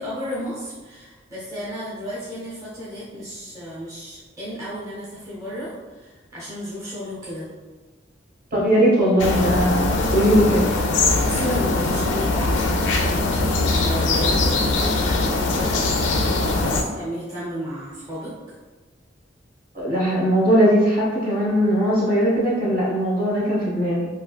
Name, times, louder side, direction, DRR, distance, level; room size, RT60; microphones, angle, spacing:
voice 1, 0.0-7.5 11.2-12.6 12.9-15.8 16.6-18.3, equal, 20° right, -9 dB, 0.7 m, -33 dB
voice 2, 8.5-10.6 19.7-24.1, equal, 50° right, -6 dB, 0.9 m, -19 dB
sound 1, 9.2-16.8, left 2 dB, 85° left, 0.4 m, -21 dB
3.3 x 2.4 x 2.3 m, 1.3 s
head